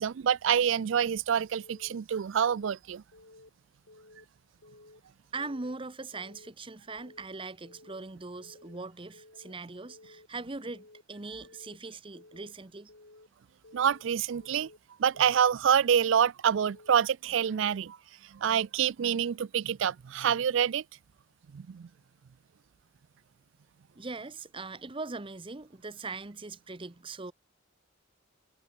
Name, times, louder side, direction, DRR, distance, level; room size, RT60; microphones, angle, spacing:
voice 1, 0.0-3.0 13.7-14.7 15.0-18.0 18.3-20.8 21.5-21.9, right 8 dB, 70° right, 0.4 m, -27 dB
Keyboard (musical) / Alarm, 1.6-2.0 2.4-2.7 3.1-3.5 3.9-4.3 4.6-5.0 5.4-5.8 6.1-6.5 6.9-7.3 7.6-8.0 8.4-8.8 9.1-9.5 9.9-10.3 10.6-11.0 11.4-11.8 12.1-12.5 12.9-13.3 13.6-14.0 14.4-14.8 15.1-15.5 15.9-16.3 16.6-17.0 17.4-17.8, left 2 dB, 65° left, 2.4 m, -55 dB
voice 2, 5.3-12.9 23.9-27.3, right 3 dB, 25° right, 0.9 m, -41 dB
head